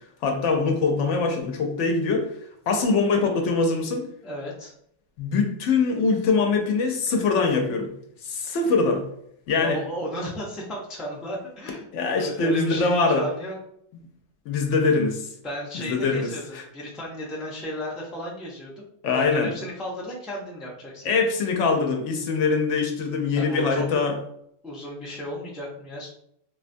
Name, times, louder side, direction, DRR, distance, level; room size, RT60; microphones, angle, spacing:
voice 1, 0.2-2.3 2.7-4.0 5.2-7.9 8.2-9.0 9.5-9.8 11.9-13.3 14.5-15.3 15.7-16.6 19.0-19.5 21.0-24.2, left 4 dB, 75° left, 3 dB, 0.9 m, -23 dB
voice 2, 4.2-4.7 9.6-11.9 12.1-13.6 15.4-18.9 19.1-21.1 23.4-24.0 24.6-26.1, equal, ahead, -3 dB, 0.4 m, -34 dB
3.8 x 2.2 x 2.5 m, 0.70 s
omnidirectional pair, 1.3 m